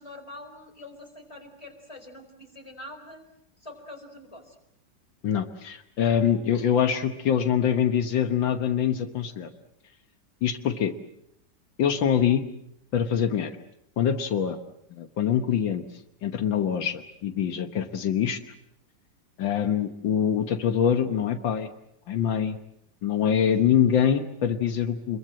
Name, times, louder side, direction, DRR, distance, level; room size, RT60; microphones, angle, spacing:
voice 1, 0.0-3.2 3.6-4.6, left 1 dB, 15° left, 3 dB, 4.6 m, -44 dB
voice 2, 5.2-9.5 10.4-10.9 11.8-12.4 12.9-13.5 14.0-14.6 15.0-15.8 16.2-18.4 19.4-21.7 22.1-22.6 23.0-25.2, left 8 dB, 85° left, 8 dB, 2.0 m, -24 dB
27.5 x 22.5 x 7.7 m, 0.77 s
omnidirectional pair, 2.0 m